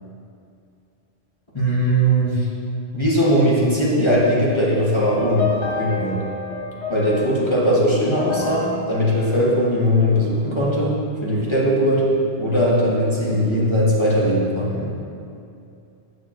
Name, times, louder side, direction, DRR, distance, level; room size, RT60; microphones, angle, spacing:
voice 1, 1.5-2.5 2.9-6.3 6.9-15.0, equal, 25° left, -6 dB, 1.3 m, -19 dB
sound 1, 5.0-10.3, left 4 dB, 85° left, 1.2 m, -31 dB
9.0 x 6.7 x 2.5 m, 2.6 s
omnidirectional pair, 1.1 m